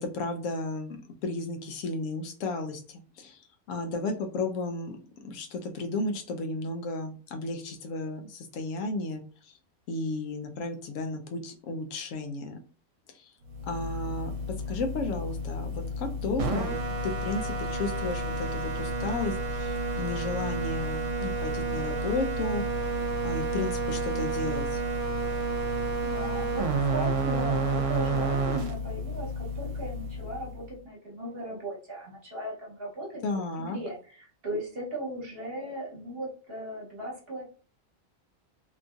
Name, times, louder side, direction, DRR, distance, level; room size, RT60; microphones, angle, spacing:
voice 1, 0.0-3.4 3.7-9.5 9.9-12.6 13.1-13.3 13.7-14.3 14.7-22.6 23.2-24.8 33.2-33.8, left 3 dB, 85° left, 5 dB, 0.9 m, -33 dB
sound 1, 13.5-30.7, right 2 dB, 75° right, 0.9 m, -30 dB
voice 2, 26.0-33.2 33.6-37.4, right 1 dB, 50° right, -1 dB, 1.1 m, -38 dB
2.9 x 2.6 x 2.3 m, 0.39 s
omnidirectional pair, 1.3 m